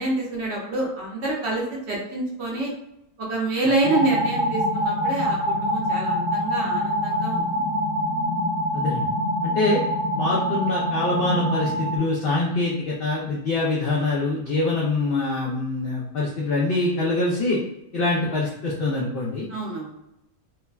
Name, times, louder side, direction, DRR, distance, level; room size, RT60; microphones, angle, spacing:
voice 1, 0.0-2.7 3.2-7.6 19.5-19.9, right 2 dB, 60° right, -4 dB, 0.8 m, -27 dB
sound 1, 3.8-12.0, equal, 30° right, 0.8 m, -25 dB
voice 2, 8.7-9.0 9.4-9.8 10.1-17.6 17.9-19.5, left 2 dB, 75° left, -4 dB, 0.5 m, -24 dB
3.2 x 2.1 x 2.3 m, 0.85 s
omnidirectional pair, 1.5 m